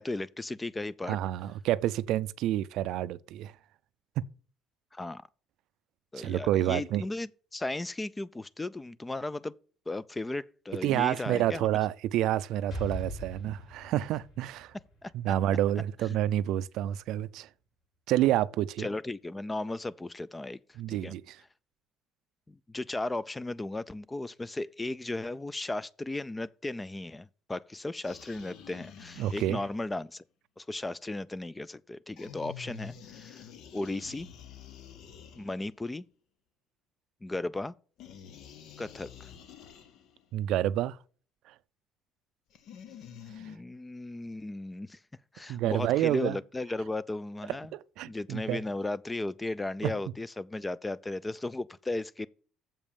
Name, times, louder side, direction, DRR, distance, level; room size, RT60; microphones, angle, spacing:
voice 1, 0.0-1.2 4.9-5.2 6.1-9.5 9.9-11.7 15.0-15.3 16.1-16.2 18.8-20.6 20.9-21.1 22.5-30.2 30.6-33.4 33.7-34.3 35.4-36.1 37.2-37.7 38.8-39.3 43.4-45.0 45.3-47.7 48.0-52.3, left 2 dB, 10° left, 0.3 m, -36 dB
voice 2, 1.1-3.5 6.2-7.0 10.8-14.7 15.1-17.5 18.1-18.9 20.8-21.4 29.2-29.6 40.3-41.0 45.5-46.4 47.7-48.6 49.8-49.9, right 13 dB, 70° right, 0.4 m, -29 dB
Explosion, 12.7-16.5, equal, 45° left, 3.4 m, -42 dB
sound 1, 28.0-29.9 32.2-35.9 38.0-40.3 42.5-43.6, left 8 dB, 65° left, 0.9 m, -48 dB
7.3 x 5.3 x 6.9 m
cardioid pair, 135°, 0 cm